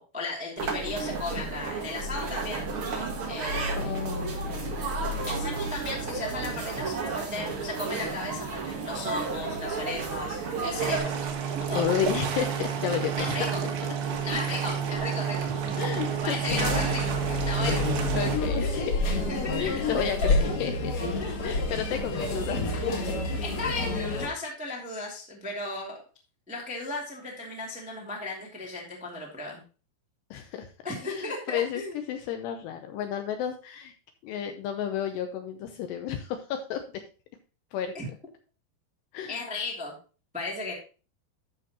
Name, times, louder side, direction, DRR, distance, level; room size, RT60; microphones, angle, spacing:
voice 1, 0.0-2.7 3.3-3.9 5.3-11.1 11.5-11.9 13.2-13.6 14.2-15.8 16.2-18.1 18.6-18.9 19.3-19.6 20.2-20.5 21.2-21.3 22.1-22.4 23.4-26.0 26.5-29.6 30.8-32.0 37.9-38.0 39.3-39.9 40.3-40.7, left 2 dB, 5° right, -2 dB, 0.5 m, -35 dB
sound 1, 0.6-11.0, right 3 dB, 90° right, 1.1 m, -32 dB
voice 2, 3.8-4.7 11.7-13.5 15.8-16.4 18.1-19.1 19.6-20.9 21.4-22.8 30.3-30.7 31.1-33.9 34.2-36.8 37.7-37.9 39.1-39.4, left 9 dB, 80° left, 6 dB, 2.5 m, -32 dB
sound 2, 10.8-18.4, right 7 dB, 70° right, 3.6 m, -29 dB
sound 3, 16.5-24.3, left 2 dB, 50° left, 2.5 m, -28 dB
13.5 x 5.7 x 2.9 m, 0.35 s
omnidirectional pair, 5.5 m